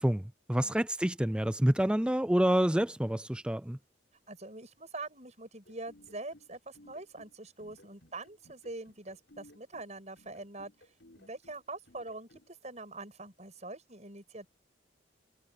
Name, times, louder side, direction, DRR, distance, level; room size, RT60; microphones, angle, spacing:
voice 1, 0.0-3.8, right 1 dB, 5° right, 0.4 m, -28 dB
voice 2, 4.3-10.7 11.1-14.5, right 2 dB, 35° right, 7.3 m, -44 dB
sound 1, 5.6-12.5, left 1 dB, 65° left, 6.2 m, -59 dB
head